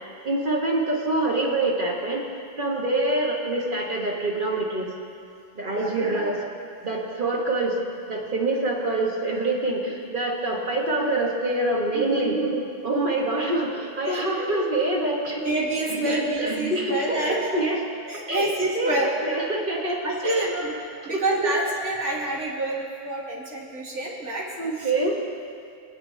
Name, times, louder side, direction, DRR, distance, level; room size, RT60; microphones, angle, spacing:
voice 1, 0.2-2.2 2.6-4.9 5.5-6.4 6.8-7.8 8.1-15.4 15.9-17.8 18.3-18.5 18.7-19.0 19.2-20.5 21.1-21.5 24.6-25.2, right 2 dB, 40° right, -2 dB, 1.5 m, -25 dB
voice 2, 15.4-17.5 18.1-19.1 20.0-20.8 21.0-24.5 24.8-24.9, right 1 dB, 65° right, -4 dB, 1.9 m, -28 dB
22.0 x 9.8 x 2.8 m, 2.4 s
omnidirectional pair, 1.3 m